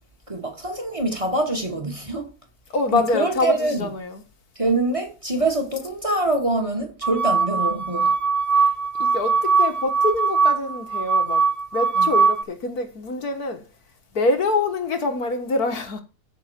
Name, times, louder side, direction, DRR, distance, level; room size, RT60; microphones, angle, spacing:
voice 1, 0.3-2.3 2.9-3.8 4.6-8.2 12.0-12.1, right 2 dB, 20° right, 2.2 m, -24 dB
voice 2, 2.7-4.2 8.5-8.7 9.0-13.7 14.1-16.0, left 3 dB, 70° left, 2.0 m, -25 dB
sound 1, 7.0-12.4, right 5 dB, 70° right, 0.3 m, -21 dB
14.0 x 5.9 x 4.4 m
omnidirectional pair, 1.7 m